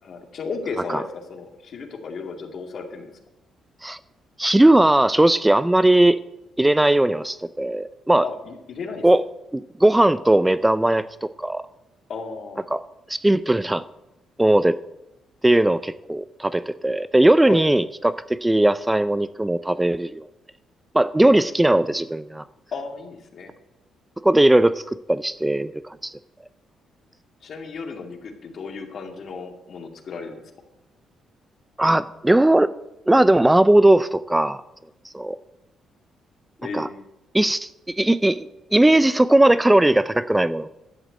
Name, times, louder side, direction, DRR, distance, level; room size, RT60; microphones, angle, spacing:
voice 1, 0.0-3.1 8.2-9.1 12.1-12.7 17.5-17.6 22.7-23.5 27.4-30.4 36.6-37.0, left 4 dB, 55° left, 4 dB, 2.4 m, -34 dB
voice 2, 4.4-6.2 6.6-8.2 9.0-9.2 9.5-11.6 12.7-12.8 13.1-13.8 14.4-14.8 15.4-20.3 20.9-22.4 24.2-24.8 25.1-26.2 31.8-32.7 33.1-34.6 35.0-35.4 36.7-36.9 37.3-40.7, right 1 dB, 10° right, 15 dB, 0.4 m, -18 dB
12.0 x 7.9 x 8.0 m, 0.93 s
cardioid pair, 90°, 0 cm